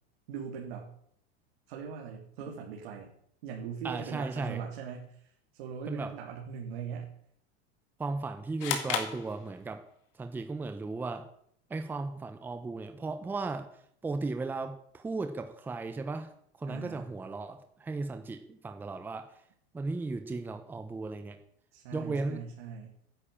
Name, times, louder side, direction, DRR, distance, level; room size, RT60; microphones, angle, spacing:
voice 1, 0.3-0.9 1.7-3.1 3.4-7.1 16.7-17.1 21.7-22.9, right 7 dB, 65° right, 0 dB, 3.3 m, -41 dB
voice 2, 3.8-4.6 5.9-6.1 8.0-9.8 10.2-11.3 11.7-13.7 14.0-16.3 16.6-19.3 19.7-21.4 21.9-22.4, right 3 dB, 5° right, 7 dB, 0.8 m, -36 dB
sound 1, 8.6-10.0, left 8 dB, 35° left, 2.3 m, -34 dB
13.5 x 10.5 x 8.6 m, 0.65 s
supercardioid pair, 175°, 32 cm